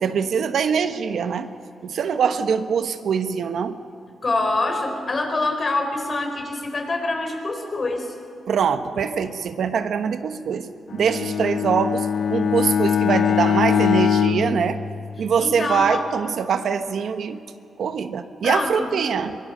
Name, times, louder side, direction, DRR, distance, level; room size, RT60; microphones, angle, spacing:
voice 1, 0.0-1.5 1.8-3.8 8.5-14.8 15.2-17.4 17.8-19.4, right 6 dB, 70° right, 9 dB, 1.1 m, -23 dB
voice 2, 4.2-8.2 15.4-16.0 18.4-18.9, left 2 dB, 40° left, 4 dB, 4.2 m, -25 dB
Bowed string instrument, 10.9-15.5, left 7 dB, 60° left, 0.8 m, -22 dB
23.5 x 21.5 x 6.7 m, 2.5 s
cardioid pair, 100°, 0 cm